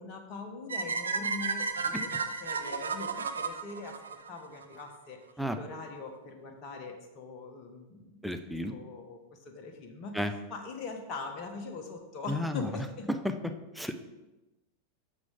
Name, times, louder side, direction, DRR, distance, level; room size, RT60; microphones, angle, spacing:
voice 1, 0.0-2.1 2.4-4.0 4.3-5.2 5.5-8.2 8.7-10.2 10.5-13.1, left 4 dB, 35° left, 3 dB, 1.2 m, -42 dB
sound 1, 0.7-4.8, right 5 dB, 70° right, 0.6 m, -33 dB
voice 2, 8.2-8.7 10.1-10.3 12.3-12.7 13.1-13.3 13.8-13.9, left 1 dB, ahead, 7 dB, 0.6 m, -32 dB
9.3 x 6.6 x 3.7 m, 1.0 s
figure-of-eight pair, 90°, 0 cm